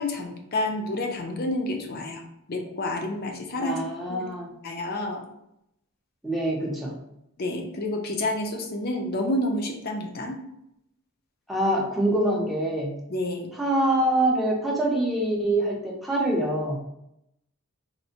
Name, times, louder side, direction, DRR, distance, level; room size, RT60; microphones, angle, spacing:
voice 1, 0.0-3.8 4.1-4.3 4.6-5.2 7.4-10.4 13.1-13.5, left 1 dB, 45° left, 3 dB, 0.5 m, -29 dB
voice 2, 3.6-4.5 6.2-6.9 11.5-12.9 13.6-16.8, right 1 dB, ahead, -3 dB, 0.6 m, -25 dB
4.2 x 2.1 x 2.8 m, 0.81 s
head